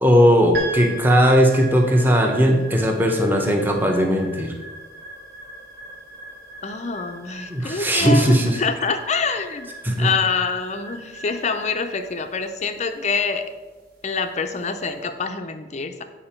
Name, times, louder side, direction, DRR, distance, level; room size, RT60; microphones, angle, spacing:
voice 1, 0.0-4.5 7.5-8.6 9.8-10.1, equal, 10° right, 2 dB, 0.8 m, -18 dB
sound 1, 0.5-14.9, right 2 dB, 55° right, 1.8 m, -39 dB
voice 2, 6.6-9.7 10.0-13.5 14.0-16.0, left 4 dB, 35° left, 8 dB, 0.5 m, -26 dB
8.7 x 4.8 x 4.4 m, 1.3 s
head